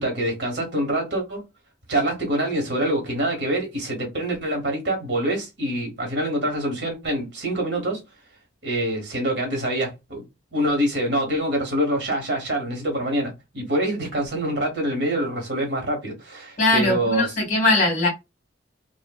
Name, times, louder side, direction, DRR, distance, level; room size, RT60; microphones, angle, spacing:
voice 1, 0.0-1.4 1.9-8.0 8.6-10.2 10.5-17.4, right 1 dB, 65° right, 1.2 m, -25 dB
voice 2, 16.6-18.1, left 2 dB, 45° left, 1.7 m, -20 dB
2.8 x 2.4 x 2.3 m
head